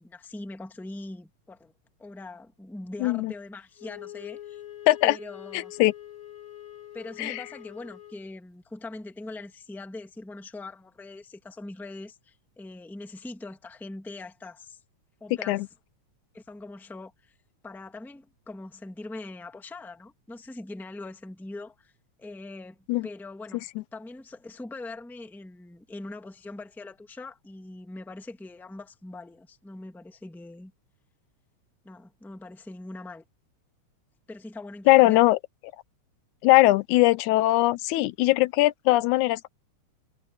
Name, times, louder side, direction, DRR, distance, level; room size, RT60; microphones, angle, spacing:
voice 1, 0.0-1.7 2.0-4.6 5.0-5.7 6.9-14.8 15.2-15.7 16.3-17.3 17.6-21.9 22.2-30.7 31.8-33.2 34.3-35.2, left 2 dB, ahead, 1.2 m, -42 dB
voice 2, 3.0-3.3 4.9-5.2 5.5-5.9 7.2-7.4 15.5-15.7 22.9-23.1 34.9-35.4 36.4-39.5, left 18 dB, 85° left, 2.0 m, -20 dB
Wind instrument woodwind instrument, 3.8-8.3, left 12 dB, 45° left, 3.0 m, -44 dB
omnidirectional pair, 3.4 m